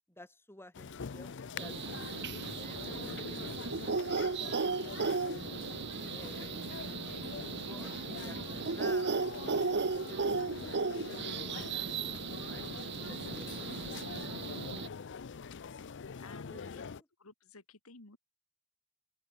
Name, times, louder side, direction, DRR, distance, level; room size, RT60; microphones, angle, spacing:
voice 1, 0.1-2.1 2.5-5.5 6.1-9.4 12.4-13.6 14.4-14.7 16.2-16.9, left 1 dB, 10° left, 6.7 m, -55 dB
sound 1, 0.7-17.0, left 5 dB, 55° left, 0.6 m, -44 dB
sound 2, 1.6-14.9, right 4 dB, 55° right, 1.0 m, -36 dB
voice 2, 16.2-16.8 17.2-18.2, left 3 dB, 75° left, 2.5 m, -54 dB
open air
head